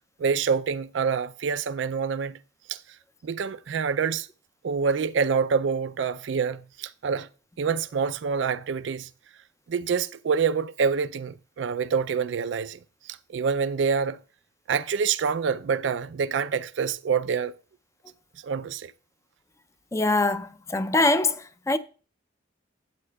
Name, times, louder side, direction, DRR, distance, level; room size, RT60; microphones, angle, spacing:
voice 1, 0.2-2.4 2.7-2.8 3.2-4.3 4.6-7.3 7.6-9.1 9.7-12.8 13.1-14.2 14.7-17.5 18.4-18.9, right 6 dB, 75° right, 0.4 m, -26 dB
voice 2, 19.9-21.8, left 2 dB, 15° left, 0.4 m, -23 dB
12.5 x 8.6 x 2.3 m
head